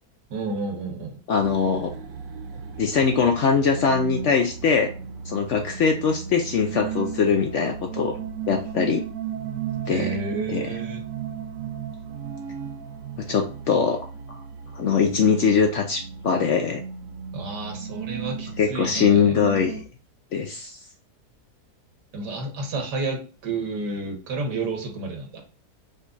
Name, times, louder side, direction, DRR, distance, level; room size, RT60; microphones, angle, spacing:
voice 1, 0.3-1.1 9.9-11.0 17.3-19.5 22.1-25.4, right 3 dB, 85° right, 2 dB, 1.7 m, -31 dB
voice 2, 1.3-1.9 2.8-4.9 5.3-8.2 8.5-9.0 9.9-10.1 10.5-10.6 13.3-14.0 14.7-16.8 18.6-19.8 20.3-20.8, left 6 dB, 65° left, 4 dB, 0.7 m, -22 dB
sound 1, 1.4-19.8, right 7 dB, 70° right, 0.9 m, -35 dB
5.1 x 2.3 x 3.8 m, 0.36 s
omnidirectional pair, 1.7 m